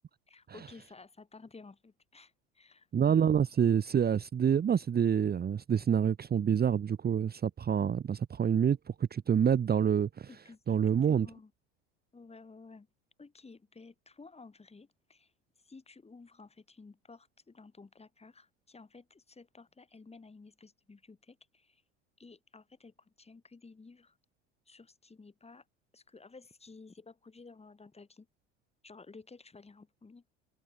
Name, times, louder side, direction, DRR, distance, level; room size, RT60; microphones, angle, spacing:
voice 1, 0.3-3.2 10.3-11.5 12.1-12.9 13.2-15.3 15.6-21.8 22.2-24.2 24.7-25.6 25.9-28.3 28.8-30.2, left 4 dB, 15° left, 4.4 m, -54 dB
voice 2, 2.9-10.3 10.7-11.3, right 8 dB, 25° right, 1.1 m, -27 dB
hypercardioid pair, 75°, 35 cm